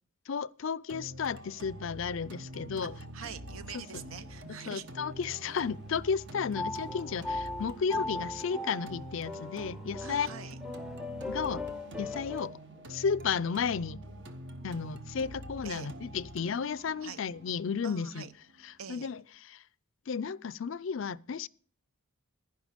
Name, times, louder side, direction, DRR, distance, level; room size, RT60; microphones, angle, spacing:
voice 1, 0.3-3.0 3.7-4.0 4.5-10.3 11.3-11.7 12.0-12.6 12.9-14.0 14.6-18.3 18.6-19.6 20.1-21.5, left 6 dB, 65° left, 0.4 m, -33 dB
sound 1, 0.9-18.9, right 1 dB, 55° right, 1.1 m, -46 dB
voice 2, 3.1-4.9 10.0-10.6 15.6-15.9 17.0-17.2 17.8-18.3 18.8-19.1, right 6 dB, 75° right, 0.8 m, -44 dB
sound 2, 3.5-4.3 5.0-5.6 6.6-12.5, left 2 dB, 5° right, 0.6 m, -39 dB
sound 3, 4.2-4.9 5.3-6.0 6.4-7.1 7.5-8.3 8.6-9.3 9.7-10.4 10.9-11.7 12.2-12.9 13.4-14.2, right 2 dB, 40° right, 2.5 m, -63 dB
11.5 x 10.5 x 5.1 m
head